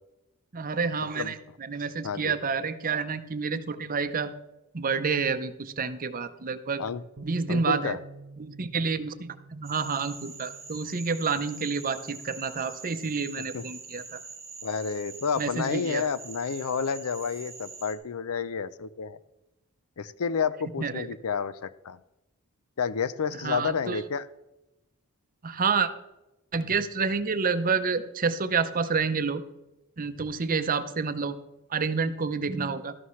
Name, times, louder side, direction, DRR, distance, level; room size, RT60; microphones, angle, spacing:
voice 1, 0.5-4.3 4.7-6.8 7.2-8.0 8.4-14.2 15.4-16.0 20.8-21.1 23.4-24.0 25.4-25.9 26.5-29.4 30.0-31.4 31.7-32.9, right 5 dB, 40° right, 10 dB, 0.7 m, -29 dB
voice 2, 2.0-2.3 6.8-7.0 7.5-8.0 13.5-13.6 14.6-19.2 20.0-22.0 22.8-24.3, left 6 dB, 75° left, 16 dB, 0.5 m, -30 dB
Bass guitar, 7.2-13.4, right 4 dB, 75° right, 0.6 m, -49 dB
Frog, 9.6-18.0, right 4 dB, 10° right, 1.4 m, -44 dB
13.0 x 11.5 x 3.2 m, 0.95 s
head